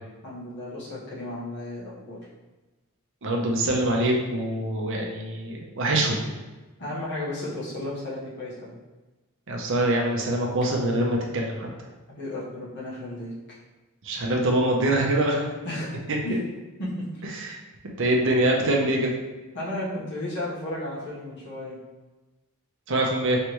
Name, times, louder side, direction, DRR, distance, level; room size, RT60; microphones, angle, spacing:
voice 1, 0.2-2.2 6.8-8.7 12.1-13.6 15.6-16.0 16.2-16.4 16.8-17.1 19.5-21.8, left 1 dB, 55° left, -7 dB, 1.3 m, -33 dB
voice 2, 3.2-6.2 9.5-11.7 14.0-15.4 16.1-16.4 17.3-17.6 18.0-19.1 22.9-23.4, right 1 dB, 60° right, 0 dB, 0.8 m, -24 dB
4.6 x 3.3 x 3.1 m, 1.2 s
head